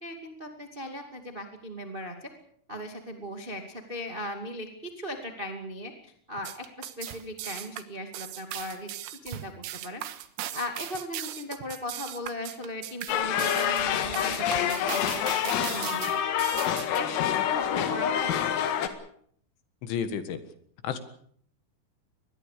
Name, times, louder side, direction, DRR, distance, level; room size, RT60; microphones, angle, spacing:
voice 1, 0.0-2.3 2.7-8.9 9.2-10.0 10.5-15.2 15.6-16.1 16.3-16.4 16.8-18.4, left 1 dB, 45° right, 4 dB, 0.6 m, -38 dB
sound 1, 6.4-17.0, right 13 dB, 80° right, 3.7 m, -38 dB
sound 2, 13.1-18.9, left 10 dB, 90° left, 4.5 m, -27 dB
voice 2, 19.8-20.4 20.8-21.0, left 7 dB, 70° left, 10 dB, 4.0 m, -31 dB
24.0 x 20.5 x 6.8 m, 0.62 s
omnidirectional pair, 5.8 m